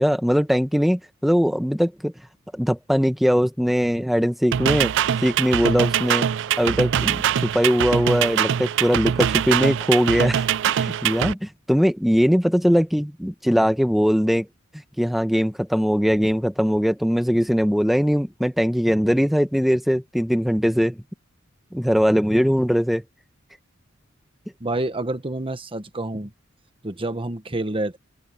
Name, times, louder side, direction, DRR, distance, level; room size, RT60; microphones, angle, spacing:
voice 1, 0.0-2.1 2.5-4.9 5.2-6.3 6.6-14.5 15.0-21.0 21.7-23.0, equal, ahead, 1.1 m, -21 dB
sound 1, 4.5-11.3, right 9 dB, 60° right, 0.4 m, -23 dB
voice 2, 24.6-26.3 26.8-28.0, right 2 dB, 25° right, 1.1 m, -28 dB
open air
head